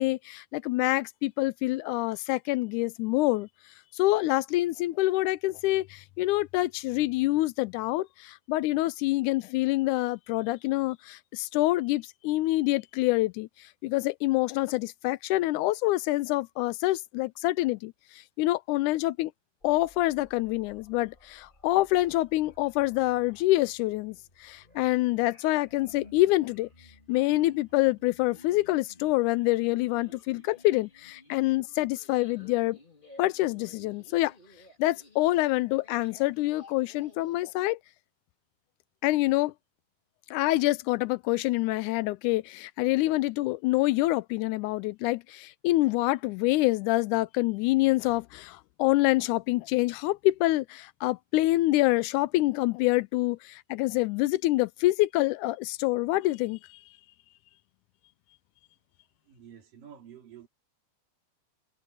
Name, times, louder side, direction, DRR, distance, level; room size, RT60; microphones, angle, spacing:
voice 1, 0.0-3.5 3.9-19.3 19.6-26.7 27.1-32.8 33.2-34.3 34.8-37.8 39.0-39.5 40.3-56.6, left 18 dB, 80° left, 1.8 m, -26 dB
sound 1, 19.6-37.4, left 2 dB, 15° left, 3.1 m, -55 dB
voice 2, 59.3-60.5, right 9 dB, 80° right, 5.0 m, -49 dB
omnidirectional pair, 3.8 m